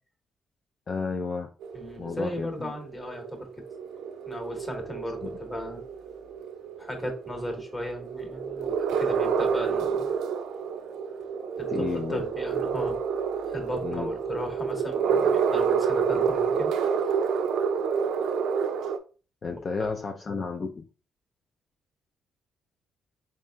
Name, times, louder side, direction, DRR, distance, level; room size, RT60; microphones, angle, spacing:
voice 1, 0.9-1.5 2.0-2.7 5.2-5.3 11.7-12.2 13.8-14.1 19.4-20.9, left 4 dB, 40° left, 0.4 m, -32 dB
sound 1, 1.6-19.0, right 6 dB, 80° right, 0.4 m, -28 dB
voice 2, 1.7-3.5 4.3-5.8 6.8-10.1 11.6-13.0 13.5-16.7 19.4-19.5 19.8-19.9, left 1 dB, 20° left, 1.3 m, -36 dB
4.0 x 3.6 x 2.2 m
cardioid pair, 90°, 0 cm